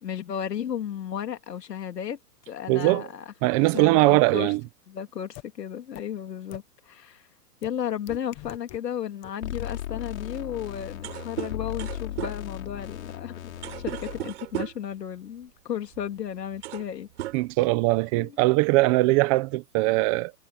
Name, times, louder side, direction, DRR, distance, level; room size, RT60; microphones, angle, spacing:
voice 1, 0.0-2.2 2.5-3.2 3.6-4.5 4.9-7.3 7.6-13.5 13.8-17.1 18.2-18.4, left 9 dB, 80° left, 3.0 m, -34 dB
voice 2, 2.7-3.1 3.4-4.6 17.3-20.3, right 21 dB, 20° right, 0.9 m, -21 dB
sound 1, 5.3-5.4 5.9-6.0 6.5-6.6 7.6-7.7 8.1-8.8 9.2-9.3, left 20 dB, 20° left, 0.9 m, -41 dB
sound 2, 9.4-14.2, left 12 dB, 55° left, 5.7 m, -36 dB
sound 3, 10.6-10.7 10.9-14.9 15.9-16.1 16.4-16.9 17.2-18.0, right 16 dB, 45° right, 4.7 m, -36 dB
hypercardioid pair, 155°, 48 cm